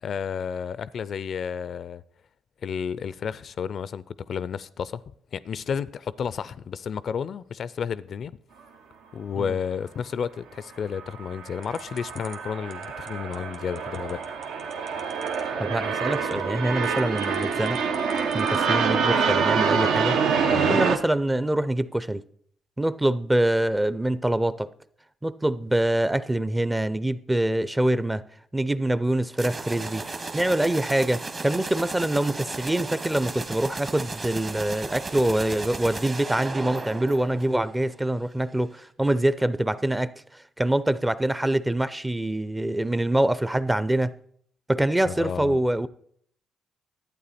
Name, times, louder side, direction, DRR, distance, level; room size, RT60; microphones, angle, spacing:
voice 1, 0.0-2.0 2.6-5.0 5.3-8.4 9.1-14.2 20.5-20.8 45.1-45.9, left 7 dB, 55° left, 0.3 m, -32 dB
sound 1, 11.0-21.0, right 6 dB, 85° right, 0.9 m, -26 dB
sound 2, 11.6-18.8, right 5 dB, 65° right, 1.4 m, -48 dB
voice 2, 15.6-17.8 18.3-20.2 20.7-22.2 22.8-24.7 25.2-28.2 28.5-30.0 30.3-44.1 44.7-45.9, right 1 dB, 10° right, 0.4 m, -25 dB
sound 3, 29.3-38.0, right 3 dB, 30° right, 1.0 m, -35 dB
11.5 x 8.7 x 4.2 m
cardioid pair, 90°, 0 cm